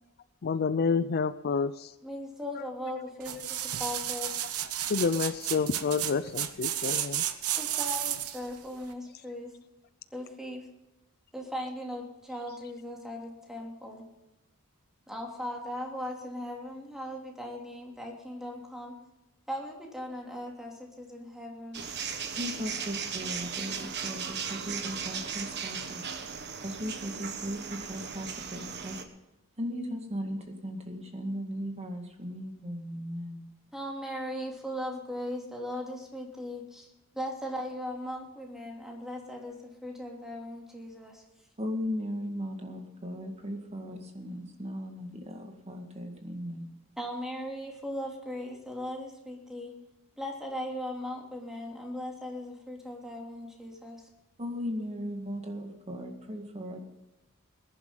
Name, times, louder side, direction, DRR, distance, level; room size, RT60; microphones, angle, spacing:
voice 1, 0.4-1.9 4.9-7.2, left 5 dB, 45° left, 14 dB, 0.4 m, -28 dB
voice 2, 2.0-3.4 3.8-4.3 7.5-9.5 10.1-10.7 11.3-14.0 15.1-18.9 19.5-21.8 33.7-36.9 37.1-41.2 47.0-49.7 50.2-54.0, left 1 dB, ahead, 0 dB, 3.0 m, -38 dB
sound 1, 3.2-8.5 8.9-9.0, right 11 dB, 85° right, 1.0 m, -32 dB
sound 2, 21.7-29.0, right 6 dB, 50° right, 1.4 m, -37 dB
voice 3, 22.3-26.0 26.3-29.0 29.6-33.4 41.6-46.7 54.4-56.8, equal, 30° right, 4 dB, 1.9 m, -37 dB
20.5 x 11.0 x 4.0 m, 0.97 s
head